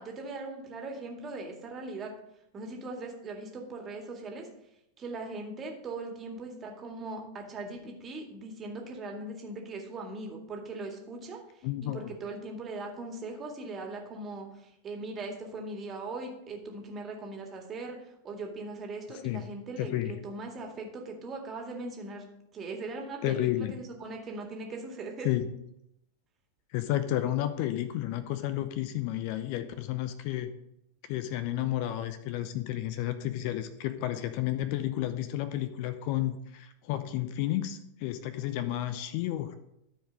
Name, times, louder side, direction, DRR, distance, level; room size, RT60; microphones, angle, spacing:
voice 1, 0.0-2.1 2.5-4.5 5.0-22.3 22.5-25.3, right 2 dB, 25° right, 1 dB, 2.1 m, -40 dB
voice 2, 11.6-12.1 19.2-19.5 19.8-20.1 23.2-23.7 25.2-25.5 26.7-30.5 31.1-39.6, left 13 dB, 45° left, 11 dB, 0.7 m, -31 dB
13.5 x 4.9 x 5.2 m, 0.80 s
figure-of-eight pair, 90°, 0 cm